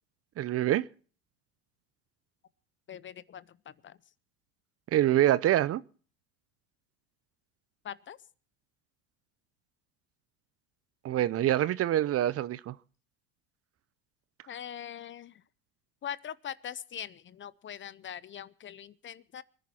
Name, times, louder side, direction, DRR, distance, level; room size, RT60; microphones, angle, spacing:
voice 1, 0.4-0.9 4.9-5.8 11.0-12.7, right 13 dB, 35° right, 0.6 m, -25 dB
voice 2, 2.9-3.6 3.8-4.0 7.8-8.2 14.5-15.4 16.0-19.4, left 9 dB, 30° left, 0.6 m, -42 dB
25.0 x 10.5 x 4.3 m
supercardioid pair, 95°, 42 cm